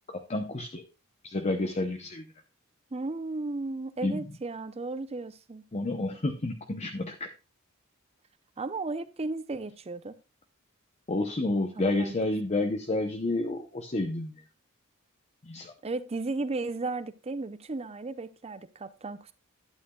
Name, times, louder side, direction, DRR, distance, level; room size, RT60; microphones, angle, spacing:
voice 1, 0.1-0.8 1.2-2.3 4.0-4.2 5.7-7.3 11.1-14.4 15.4-15.7, left 2 dB, 30° left, 0.7 m, -30 dB
voice 2, 2.9-5.6 8.6-10.1 12.0-12.1 15.8-19.3, right 3 dB, 30° right, 0.6 m, -34 dB
11.5 x 9.2 x 2.3 m
head